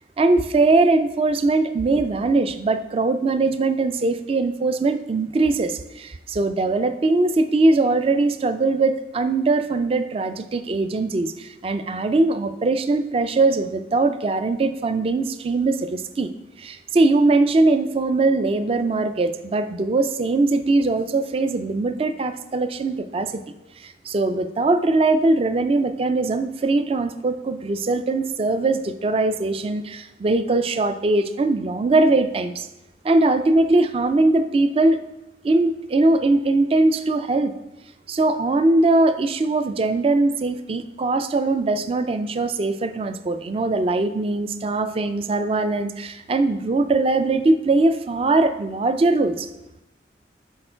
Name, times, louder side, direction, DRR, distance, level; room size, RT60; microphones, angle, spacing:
voice 1, 0.2-16.3 16.6-23.4 23.8-32.7 33.0-35.0 35.4-37.5 38.1-49.5, right 2 dB, 30° right, 10 dB, 0.3 m, -21 dB
6.6 x 4.4 x 4.3 m, 0.95 s
head